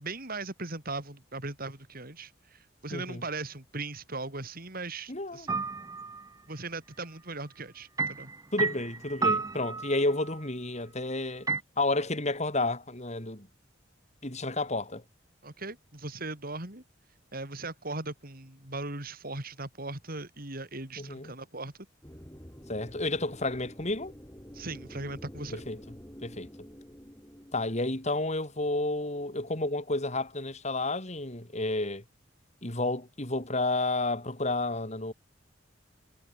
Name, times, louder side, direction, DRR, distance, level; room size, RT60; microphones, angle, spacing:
voice 1, 0.0-5.5 6.5-8.3 15.4-16.8 17.3-21.7 24.5-25.6, right 3 dB, 50° right, 4.2 m, -38 dB
voice 2, 2.9-3.2 5.1-5.5 8.5-11.5 11.8-13.5 14.2-15.0 21.0-21.3 22.7-24.1 25.5-25.8 26.2-26.5 27.5-32.0 32.6-35.1, left 2 dB, 35° left, 4.1 m, -31 dB
sound 1, 5.5-6.2 8.0-10.3 11.5-11.6, right 4 dB, 20° right, 0.5 m, -31 dB
sound 2, 22.0-28.6, equal, 15° left, 4.7 m, -49 dB
head